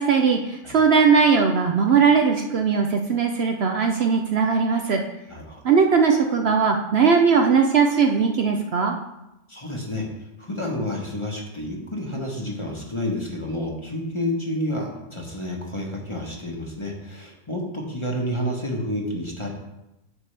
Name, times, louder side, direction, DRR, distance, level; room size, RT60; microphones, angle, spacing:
voice 1, 0.0-5.0 5.6-8.9, right 5 dB, 60° right, 3 dB, 0.8 m, -19 dB
voice 2, 5.3-5.6 9.5-10.1 10.4-19.5, left 1 dB, 25° left, -1 dB, 1.2 m, -29 dB
9.7 x 6.8 x 3.3 m, 0.92 s
omnidirectional pair, 1.4 m